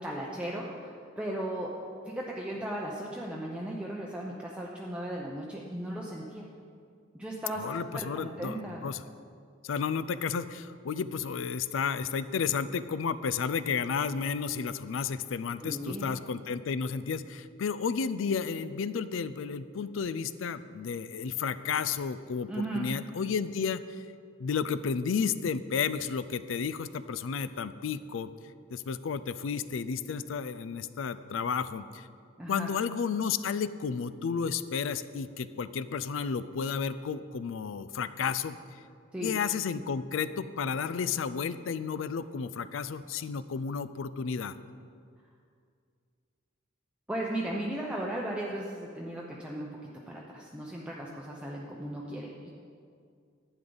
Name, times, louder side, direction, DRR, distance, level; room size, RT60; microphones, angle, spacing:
voice 1, 0.0-1.7 2.1-6.5 7.1-8.8 15.6-16.1 22.5-22.9 32.4-32.7 39.1-39.3 47.1-49.7 50.1-52.5, right 1 dB, 5° right, -4 dB, 0.7 m, -36 dB
voice 2, 7.6-9.0 9.6-24.0 24.4-28.3 28.7-32.1 32.5-38.6 39.2-44.6, left 6 dB, 75° left, 15 dB, 0.4 m, -32 dB
11.5 x 9.0 x 3.9 m, 2.3 s
head